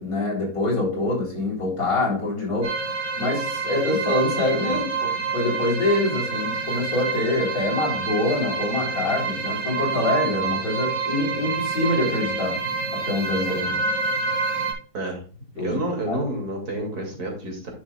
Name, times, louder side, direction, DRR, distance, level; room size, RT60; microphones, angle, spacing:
voice 1, 0.0-2.8 3.2-4.9 5.3-12.6 12.9-13.6 15.6-15.8 16.1-16.2, left 2 dB, 55° left, -2 dB, 4.1 m, -25 dB
sound 1, 2.6-14.7, right 4 dB, 85° right, 2.5 m, -27 dB
voice 2, 13.5-13.8 14.9-15.2 15.5-17.7, right 1 dB, 65° right, 1 dB, 3.0 m, -29 dB
10.5 x 6.1 x 2.3 m, 0.41 s
omnidirectional pair, 1.8 m